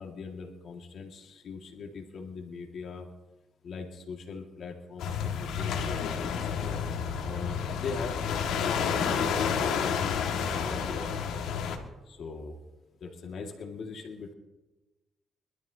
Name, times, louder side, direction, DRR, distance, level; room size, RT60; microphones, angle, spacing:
voice 1, 0.0-3.1 3.6-6.6 7.2-11.2 12.1-12.6 13.0-14.3, left 4 dB, 60° left, 1 dB, 2.0 m, -41 dB
sound 1, 5.0-11.8, left 7 dB, 85° left, 1.9 m, -30 dB
24.5 x 12.5 x 2.8 m, 1.1 s
cardioid pair, 90°, 0 cm